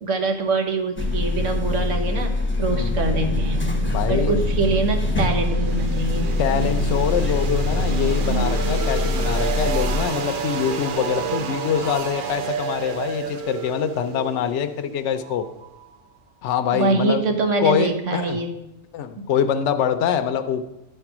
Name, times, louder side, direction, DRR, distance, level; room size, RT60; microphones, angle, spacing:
voice 1, 0.0-2.3 2.6-3.6 4.1-6.4 16.7-18.5 19.2-19.3, right 3 dB, 80° right, 5 dB, 1.5 m, -24 dB
sound 1, 1.0-10.1, left 2 dB, 10° left, 0.9 m, -24 dB
sound 2, 3.1-16.0, right 6 dB, 55° right, 0.7 m, -30 dB
voice 2, 3.9-4.4 6.4-15.5 16.4-17.3 17.6-18.4 18.9-20.6, left 8 dB, 75° left, 8 dB, 0.9 m, -24 dB
11.0 x 4.4 x 6.0 m, 0.94 s
omnidirectional pair, 1.2 m